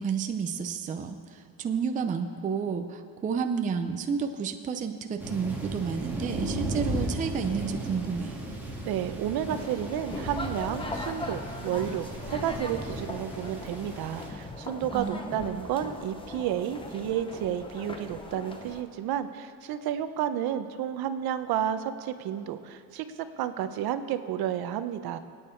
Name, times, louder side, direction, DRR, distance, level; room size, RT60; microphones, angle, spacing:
voice 1, 0.0-8.3 14.9-15.7, right 6 dB, 20° right, 6 dB, 0.4 m, -31 dB
Thunder, 5.2-14.3, right 1 dB, 5° right, 1.7 m, -36 dB
voice 2, 8.8-25.2, right 10 dB, 65° right, 10 dB, 0.8 m, -31 dB
sound 1, 9.5-18.8, left 2 dB, 15° left, 0.8 m, -39 dB
24.0 x 9.1 x 4.4 m, 2.4 s
cardioid pair, 180°, 40 cm